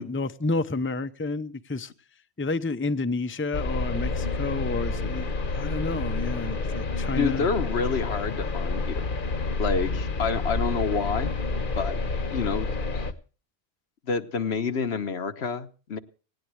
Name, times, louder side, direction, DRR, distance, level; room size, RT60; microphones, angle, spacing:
voice 1, 0.0-1.9 2.4-7.5, left 3 dB, 15° left, 0.7 m, -30 dB
sound 1, 3.5-13.1, left 3 dB, 50° left, 1.3 m, -29 dB
voice 2, 7.2-9.1 9.6-11.3 11.8-12.0 12.3-13.1 14.1-16.0, left 5 dB, 75° left, 1.4 m, -28 dB
19.0 x 18.0 x 3.3 m
omnidirectional pair, 1.1 m